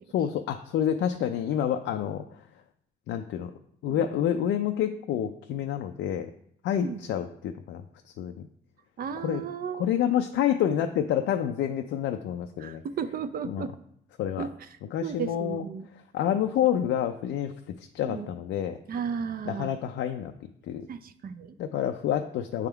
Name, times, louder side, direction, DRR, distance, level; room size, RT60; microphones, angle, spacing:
voice 1, 0.1-2.2 3.1-3.5 3.8-6.3 6.6-8.5 9.2-9.4 9.8-12.8 13.5-13.6 14.2-14.5 14.9-15.7 16.1-18.8 19.4-20.9 21.6-22.7, left 10 dB, 75° left, 5 dB, 0.4 m, -28 dB
voice 2, 9.0-9.9 12.6-13.7 14.4-14.5 15.0-15.9 18.0-18.3 18.9-19.8 20.9-21.6, right 7 dB, 50° right, 11 dB, 0.5 m, -34 dB
8.1 x 3.6 x 3.4 m, 0.67 s
cardioid pair, 90°, 20 cm